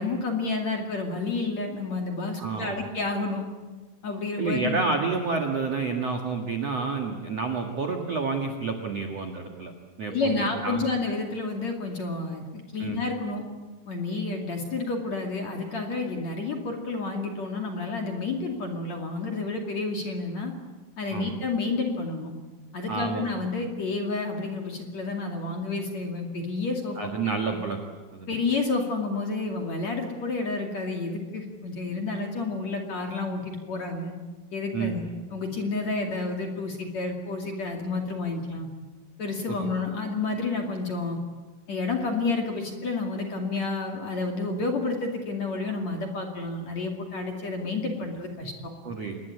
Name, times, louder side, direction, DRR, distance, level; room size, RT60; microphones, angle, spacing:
voice 1, 0.0-3.4 4.0-4.8 10.1-13.4 13.9-20.5 21.0-22.3 22.7-27.1 28.3-34.1 34.5-35.0 35.3-38.7 39.2-41.2 41.7-48.7, left 3 dB, 45° left, 2 dB, 2.9 m, -30 dB
voice 2, 2.4-2.8 4.4-9.7 10.0-10.9 12.8-13.0 21.1-21.3 22.9-23.3 27.0-27.8 28.1-28.3 34.7-35.0 39.5-39.7 48.8-49.2, right 4 dB, 55° right, 3 dB, 1.8 m, -29 dB
27.0 x 21.0 x 8.5 m, 1.3 s
omnidirectional pair, 5.8 m